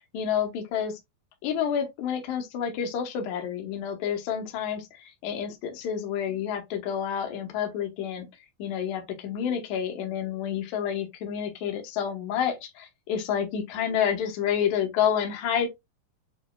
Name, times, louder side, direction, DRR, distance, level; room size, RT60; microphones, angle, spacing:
voice 1, 0.1-0.9 1.4-8.3 8.6-15.7, left 8 dB, 70° left, 2.1 m, -29 dB
6.8 x 2.7 x 2.2 m
omnidirectional pair, 4.1 m